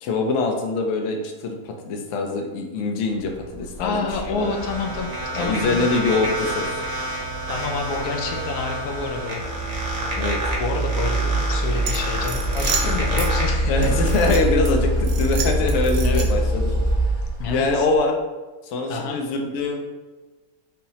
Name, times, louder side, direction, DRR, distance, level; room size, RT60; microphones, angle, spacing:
voice 1, 0.0-4.5 5.3-6.8 10.1-10.4 13.7-16.8 17.5-18.2 18.7-19.8, left 3 dB, 65° left, 2 dB, 0.8 m, -24 dB
sound 1, 3.5-18.0, right 1 dB, 35° left, 1.1 m, -25 dB
voice 2, 3.8-5.1 5.3-6.0 7.1-9.4 10.6-13.9 15.8-16.2 17.4-17.9 18.9-19.2, left 4 dB, 85° left, 2 dB, 1.1 m, -29 dB
sound 2, 3.8-14.3, right 1 dB, 55° right, 1.1 m, -30 dB
sound 3, 11.9-13.3 13.8-14.7 15.0-16.5, right 6 dB, 80° right, 1.1 m, -30 dB
5.5 x 2.0 x 2.8 m, 1.2 s
omnidirectional pair, 1.6 m